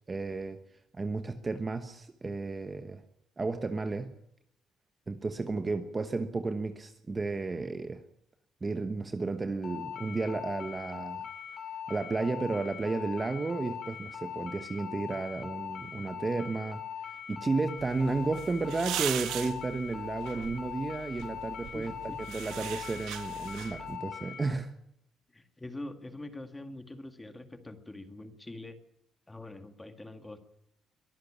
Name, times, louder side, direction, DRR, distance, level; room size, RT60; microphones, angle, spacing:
voice 1, 0.1-0.6 0.9-3.0 3.4-4.1 5.1-8.0 8.6-11.3 11.9-16.8 17.3-21.9 22.3-24.7, right 3 dB, 20° right, 8 dB, 1.1 m, -33 dB
sound 1, 9.6-24.4, left 8 dB, 45° left, 4.7 m, -41 dB
sound 2, 17.8-24.0, right 12 dB, 90° right, 1.6 m, -40 dB
voice 2, 21.7-22.2 25.3-28.8 29.3-30.5, left 2 dB, 10° left, 8 dB, 1.9 m, -44 dB
23.0 x 14.0 x 8.7 m, 0.76 s
cardioid pair, 155°, 0 cm